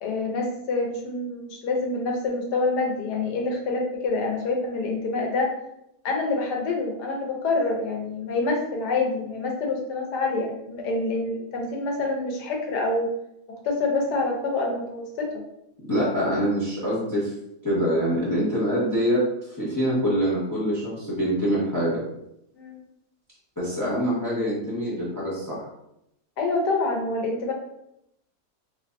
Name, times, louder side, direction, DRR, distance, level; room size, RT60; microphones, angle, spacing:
voice 1, 0.0-5.5 6.0-13.1 13.6-15.4 22.6-22.8 26.4-27.5, left 3 dB, 80° left, 1 dB, 1.3 m, -26 dB
voice 2, 15.9-17.3 17.6-22.0 23.6-25.7, equal, 15° left, -7 dB, 0.9 m, -25 dB
3.3 x 3.0 x 2.6 m, 0.80 s
omnidirectional pair, 1.7 m